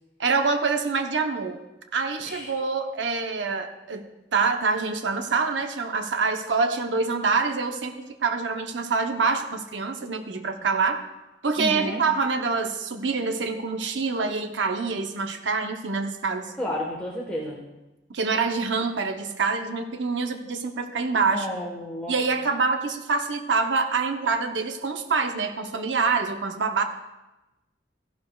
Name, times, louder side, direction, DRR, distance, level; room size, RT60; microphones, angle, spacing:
voice 1, 0.2-1.6 1.9-7.9 8.2-11.0 11.4-16.5 18.1-21.5 22.1-26.8, right 4 dB, 90° right, 6 dB, 0.8 m, -26 dB
voice 2, 2.2-2.5 11.6-12.0 16.6-17.6 21.3-22.1, equal, 5° left, -4 dB, 1.2 m, -31 dB
14.5 x 11.5 x 2.3 m, 1.0 s
head